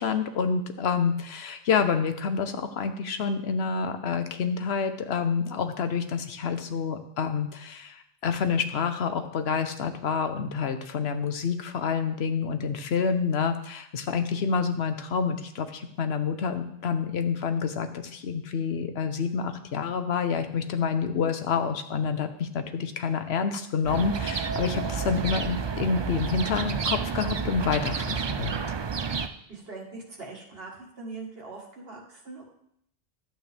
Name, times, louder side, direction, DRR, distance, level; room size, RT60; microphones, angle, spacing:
voice 1, 0.0-28.5, left 6 dB, 85° left, 8 dB, 1.1 m, -28 dB
sound 1, 23.8-29.3, right 6 dB, 45° right, 0.3 m, -30 dB
voice 2, 29.5-32.4, right 3 dB, 70° right, -1 dB, 1.9 m, -41 dB
11.5 x 7.8 x 3.4 m, 0.73 s
omnidirectional pair, 1.0 m